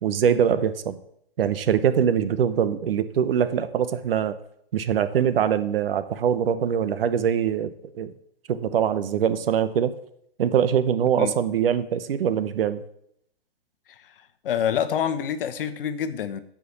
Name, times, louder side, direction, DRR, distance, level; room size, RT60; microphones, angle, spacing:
voice 1, 0.0-1.0 1.4-4.4 4.7-8.1 8.5-9.9 10.4-12.8, right 8 dB, 70° right, 13 dB, 1.0 m, -23 dB
voice 2, 14.4-16.4, left 8 dB, 60° left, 11 dB, 1.0 m, -27 dB
9.5 x 5.0 x 7.0 m, 0.71 s
hypercardioid pair, 135°, 30 cm